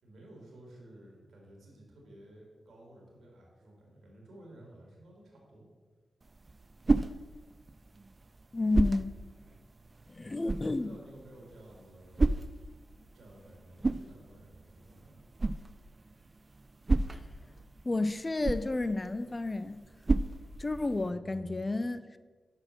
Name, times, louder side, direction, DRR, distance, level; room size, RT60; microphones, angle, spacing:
voice 1, 0.0-5.7 10.7-12.3 13.1-15.3 21.0-21.6, right 1 dB, 80° right, -2 dB, 2.0 m, -53 dB
sound 1, 6.2-21.1, right 3 dB, 45° right, 0.3 m, -34 dB
voice 2, 8.5-9.1 10.1-10.9 17.1-17.2 17.8-19.8 20.6-22.0, left 2 dB, 35° left, 13 dB, 0.4 m, -31 dB
6.2 x 4.3 x 6.3 m, 1.4 s
cardioid pair, 45°, 0 cm